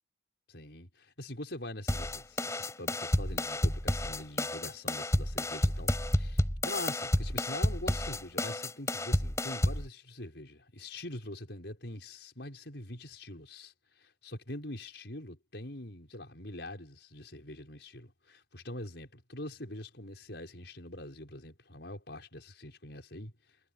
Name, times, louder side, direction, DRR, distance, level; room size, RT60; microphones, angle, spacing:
voice 1, 0.5-13.7 14.0-23.3, left 1 dB, 70° left, 5.7 m, -44 dB
sound 1, 1.9-9.9, left 1 dB, 15° left, 5.1 m, -30 dB
head